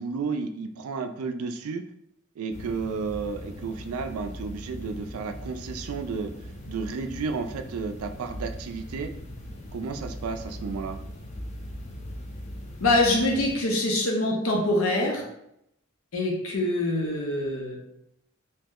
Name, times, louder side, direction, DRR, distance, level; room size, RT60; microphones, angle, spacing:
voice 1, 0.0-1.8 2.4-6.3 6.7-9.1 9.7-11.0, right 4 dB, 90° right, 7 dB, 0.3 m, -32 dB
sound 1, 2.5-13.6, equal, 35° left, 0.4 m, -40 dB
voice 2, 12.8-15.2 16.1-17.8, left 1 dB, 75° left, -1 dB, 0.6 m, -24 dB
2.8 x 2.0 x 3.5 m, 0.78 s
head